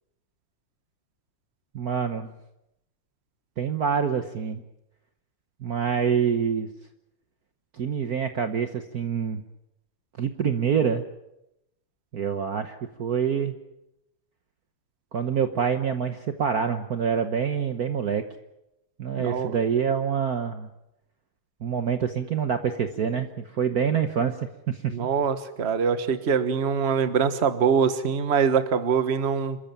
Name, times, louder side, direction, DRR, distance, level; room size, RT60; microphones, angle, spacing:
voice 1, 1.7-2.3 3.6-4.6 5.6-6.7 7.7-9.4 10.2-11.0 12.1-13.6 15.1-18.3 19.0-20.7 21.6-24.4 24.7-24.9, right 7 dB, 50° right, 8 dB, 1.4 m, -26 dB
voice 2, 19.1-19.5 24.9-29.6, right 6 dB, 35° right, 11 dB, 1.4 m, -23 dB
28.0 x 14.0 x 9.0 m, 0.88 s
omnidirectional pair, 2.3 m